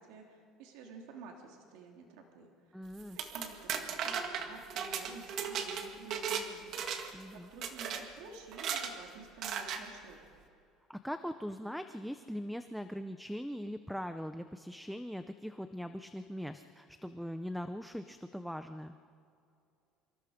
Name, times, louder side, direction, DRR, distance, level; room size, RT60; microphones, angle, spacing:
voice 1, 0.0-10.2, right 4 dB, 85° right, 1 dB, 3.1 m, -51 dB
voice 2, 2.7-3.2 7.1-7.5 10.9-18.9, equal, ahead, 8 dB, 0.5 m, -41 dB
sound 1, 3.0-6.5 6.7-7.2 7.6-8.0 8.5-8.9 9.4-9.8, right 7 dB, 45° right, 1.8 m, -36 dB
27.0 x 25.5 x 5.1 m, 2.5 s
cardioid pair, 170°, 0 cm